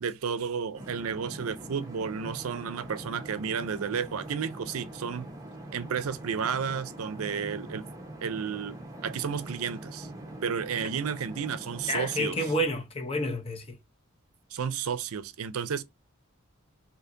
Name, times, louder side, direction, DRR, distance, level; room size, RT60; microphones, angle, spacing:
voice 1, 0.0-5.3 5.7-7.9 8.2-8.8 9.0-10.1 10.4-12.4 14.5-15.8, right 6 dB, 85° right, 0.5 m, -32 dB
sound 1, 0.7-12.7, right 1 dB, 15° right, 0.8 m, -43 dB
voice 2, 11.9-13.8, equal, 25° left, 0.8 m, -29 dB
4.3 x 2.8 x 2.6 m
head